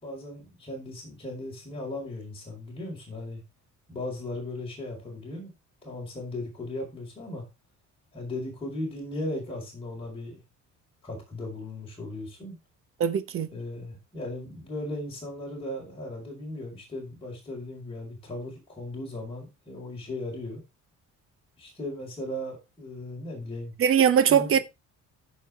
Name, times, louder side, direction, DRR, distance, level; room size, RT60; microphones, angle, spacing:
voice 1, 0.0-3.4 3.9-5.5 5.8-7.4 8.1-10.4 11.0-12.6 13.5-20.6 21.6-23.7 24.3-24.6, left 1 dB, 20° left, 4.6 m, -37 dB
voice 2, 13.0-13.5 23.8-24.6, right 8 dB, 45° right, 1.0 m, -21 dB
15.0 x 5.5 x 3.5 m
cardioid pair, 170°, 31 cm